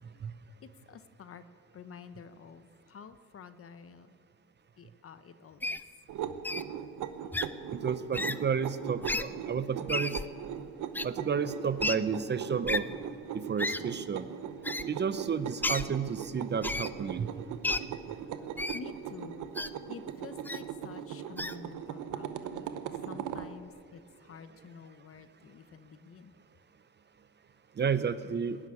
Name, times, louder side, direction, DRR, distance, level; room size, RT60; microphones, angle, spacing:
voice 1, 0.9-1.4 1.7-4.2 4.8-5.8 18.7-19.5 19.9-22.8 23.1-26.3 28.2-28.4, left 6 dB, 50° left, 12 dB, 0.9 m, -49 dB
Wild animals, 5.6-5.8 6.4-6.6 7.3-7.5 8.1-8.4 9.0-9.2 9.9-10.2 10.9-11.0 11.8-11.9 12.7-12.8 13.6-13.8 14.6-14.8 15.6-15.9 16.6-16.9 17.6-17.8 18.6-18.8 19.5-19.7 20.4-20.6 21.4-21.5, left 2 dB, 5° left, 0.4 m, -32 dB
sound 1, 6.1-23.5, right 9 dB, 80° right, 0.9 m, -39 dB
voice 2, 7.7-10.2 11.0-12.9 13.3-14.3 14.9-17.3 27.8-28.6, right 6 dB, 35° right, 13 dB, 0.7 m, -31 dB
19.5 x 7.0 x 9.7 m, 2.1 s
cardioid pair, 90°, 30 cm